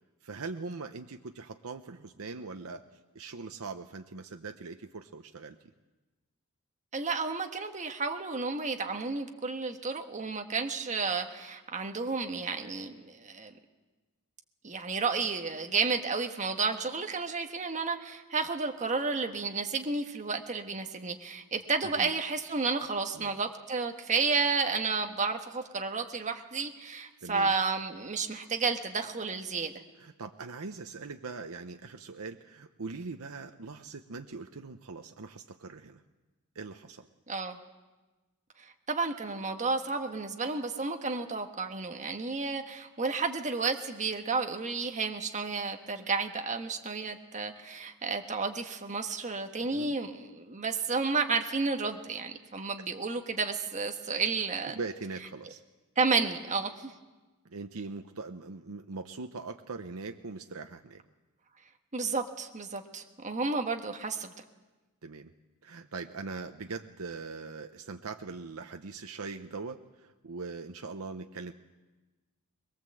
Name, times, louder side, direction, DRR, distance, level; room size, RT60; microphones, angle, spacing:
voice 1, 0.2-2.8 3.1-5.6 22.0-22.1 23.2-23.3 27.2-27.5 30.0-36.0 36.5-37.1 49.7-49.9 54.7-55.6 57.4-61.0 65.0-65.3 65.6-71.5, right 4 dB, 70° right, 6 dB, 0.8 m, -41 dB
voice 2, 6.9-13.5 14.6-29.7 37.3-37.6 38.6-54.7 56.0-56.9 61.9-64.3, right 4 dB, 35° right, 4 dB, 1.3 m, -32 dB
22.0 x 22.0 x 7.7 m, 1.2 s
head